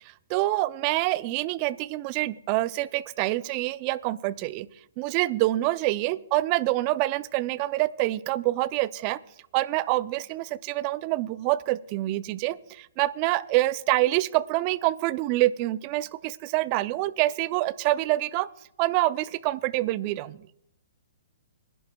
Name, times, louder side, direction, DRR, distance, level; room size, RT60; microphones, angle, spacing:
voice 1, 0.3-4.7 5.0-9.2 9.5-18.5 18.8-20.4, right 17 dB, 35° right, 17 dB, 0.5 m, -26 dB
26.0 x 11.0 x 2.3 m, 0.75 s
hypercardioid pair, 135°, 0 cm